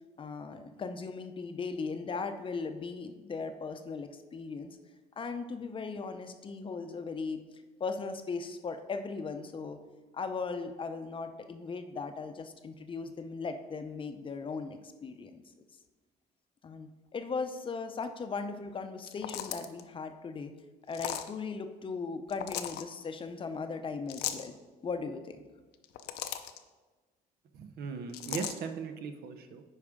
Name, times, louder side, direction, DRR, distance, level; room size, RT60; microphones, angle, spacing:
voice 1, 0.2-4.8 5.2-7.4 7.8-9.8 10.1-15.4 16.6-20.5 20.9-24.5 24.8-25.5, left 4 dB, 30° left, 7 dB, 0.6 m, -38 dB
sound 1, 19.0-19.8 20.9-21.3 22.3-22.8 24.1-24.5 25.7-26.6 28.1-28.6, left 11 dB, 75° left, 0.6 m, -37 dB
voice 2, 27.5-29.6, right 5 dB, 70° right, 8 dB, 0.7 m, -38 dB
9.5 x 4.9 x 3.6 m, 1.3 s
cardioid pair, 110°, 17 cm